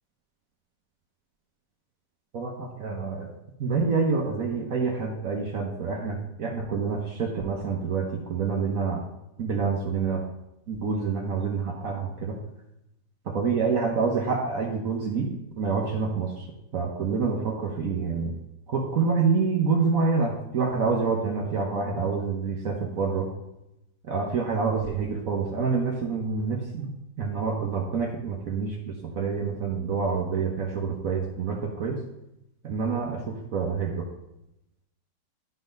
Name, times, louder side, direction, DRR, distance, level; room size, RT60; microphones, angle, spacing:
voice 1, 2.3-3.3 3.6-9.0 9.4-10.2 10.7-12.4 13.2-16.5 16.7-18.3 18.7-23.3 24.0-32.0 32.6-34.0, right 5 dB, 55° right, 1 dB, 1.1 m, -27 dB
11.0 x 4.0 x 5.2 m, 0.88 s
omnidirectional pair, 2.0 m